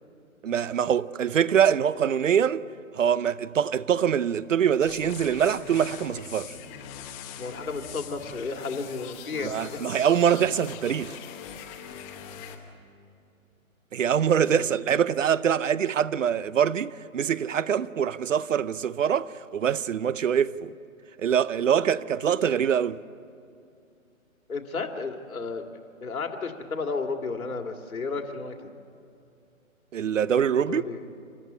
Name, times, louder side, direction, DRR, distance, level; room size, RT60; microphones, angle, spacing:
voice 1, 0.4-2.7 2.9-6.5 9.4-11.1 13.9-20.7 21.2-23.0 29.9-30.8, right 8 dB, 60° right, 0.8 m, -24 dB
sound 1, 4.8-12.6, left 8 dB, 10° left, 0.9 m, -42 dB
voice 2, 7.4-9.8 14.5-14.7 24.5-28.6 30.7-31.0, left 4 dB, 80° left, 2.3 m, -33 dB
29.0 x 13.5 x 9.9 m
hypercardioid pair, 150°, 42 cm